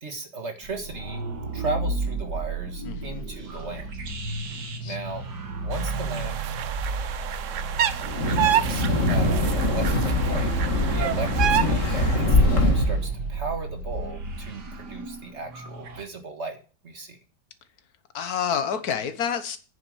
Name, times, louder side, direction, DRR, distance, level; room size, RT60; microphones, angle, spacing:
voice 1, 0.0-1.2 1.5-3.9 4.9-5.2 5.6-6.4 8.2-10.5 10.9-16.6 16.8-17.2, right 3 dB, 45° right, 1.7 m, -36 dB
sound 1, 0.6-16.0, right 3 dB, 80° right, 2.3 m, -33 dB
voice 2, 2.8-3.2 4.5-5.0 18.1-19.6, left 7 dB, 65° left, 1.6 m, -29 dB
sound 2, 5.7-12.3, right 10 dB, 60° right, 0.9 m, -29 dB
Wind, 8.0-13.1, left 1 dB, 45° left, 2.3 m, -23 dB
9.2 x 7.2 x 6.3 m
omnidirectional pair, 1.8 m